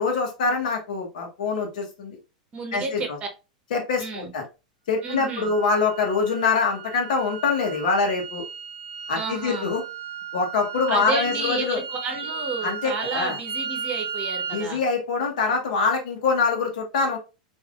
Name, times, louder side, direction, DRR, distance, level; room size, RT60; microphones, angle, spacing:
voice 1, 0.0-2.2 2.7-3.0 3.7-4.4 4.9-8.4 9.1-9.8 10.3-11.8 12.6-13.4 14.5-17.2, left 4 dB, 70° left, 2 dB, 1.0 m, -24 dB
voice 2, 2.5-3.1 4.0-4.3 5.0-5.5 9.1-9.7 10.9-14.8, right 4 dB, 30° right, 4 dB, 0.9 m, -31 dB
sound 1, 5.0-14.7, right 6 dB, 65° right, 0.7 m, -35 dB
3.3 x 2.6 x 2.4 m, 0.29 s
hypercardioid pair, 110°, 4 cm